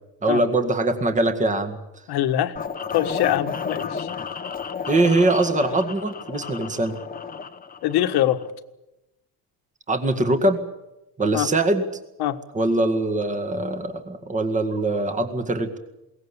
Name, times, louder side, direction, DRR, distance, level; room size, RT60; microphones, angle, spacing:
voice 1, 0.2-1.8 4.9-7.0 9.9-10.6 11.2-11.8 12.5-15.8, right 2 dB, 20° right, 7 dB, 2.0 m, -22 dB
voice 2, 2.1-2.5 2.9-4.1 7.8-8.4 11.3-11.5 12.2-12.4, left 12 dB, 85° left, 9 dB, 1.7 m, -23 dB
sound 1, 2.6-8.5, left 6 dB, 25° left, 1.0 m, -32 dB
22.5 x 19.0 x 8.4 m, 0.93 s
cardioid pair, 155°, 37 cm